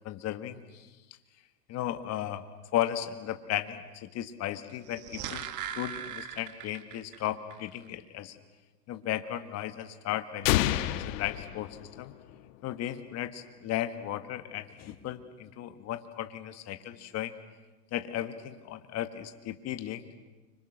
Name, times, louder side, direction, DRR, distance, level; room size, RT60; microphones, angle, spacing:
voice 1, 0.0-0.9 1.7-2.5 2.7-5.5 5.7-8.3 8.9-12.1 12.6-17.3 17.9-20.2, left 12 dB, 30° left, 8 dB, 1.8 m, -35 dB
sound 1, 4.8-7.2 7.5-7.6, right 9 dB, 40° right, 1.8 m, -39 dB
sound 2, 10.4-12.4, left 14 dB, 55° left, 1.5 m, -29 dB
30.0 x 25.5 x 6.6 m, 1.2 s
hypercardioid pair, 130°, 48 cm